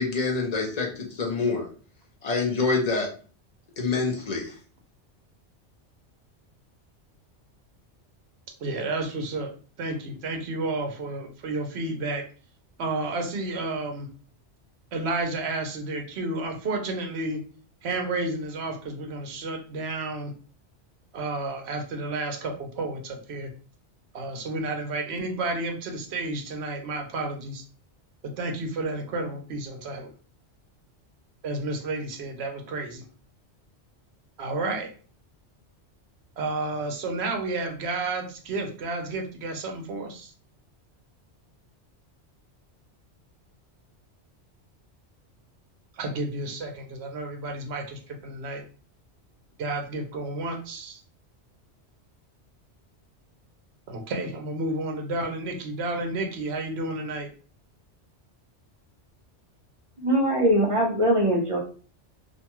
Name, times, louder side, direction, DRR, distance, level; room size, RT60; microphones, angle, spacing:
voice 1, 0.0-1.7 2.2-3.1 3.8-4.5, left 4 dB, 45° left, 1 dB, 0.6 m, -26 dB
voice 2, 8.6-9.5 9.8-12.2 12.8-14.1 14.9-17.4 17.8-20.3 21.1-23.5 24.1-27.6 28.2-30.1 31.4-33.0 34.4-34.9 36.4-40.3 46.0-48.6 49.6-51.0 53.9-57.3, right 2 dB, 70° right, 3 dB, 0.9 m, -31 dB
voice 3, 60.0-61.6, right 1 dB, 40° right, -1 dB, 0.5 m, -22 dB
2.6 x 2.2 x 2.9 m, 0.40 s
omnidirectional pair, 1.2 m